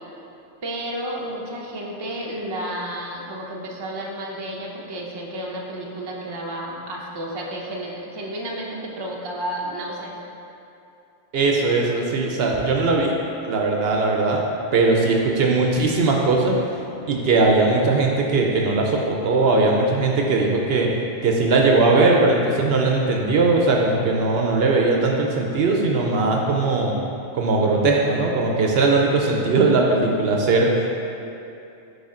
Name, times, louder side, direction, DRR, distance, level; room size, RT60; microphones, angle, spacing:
voice 1, 0.6-10.2, right 1 dB, 30° right, -2 dB, 0.5 m, -31 dB
voice 2, 11.3-13.1 13.4-14.5 14.7-16.6 17.1-20.9 21.2-26.9 27.3-30.7, right 3 dB, 65° right, 0 dB, 0.8 m, -19 dB
8.3 x 3.5 x 3.7 m, 2.7 s
omnidirectional pair, 1.2 m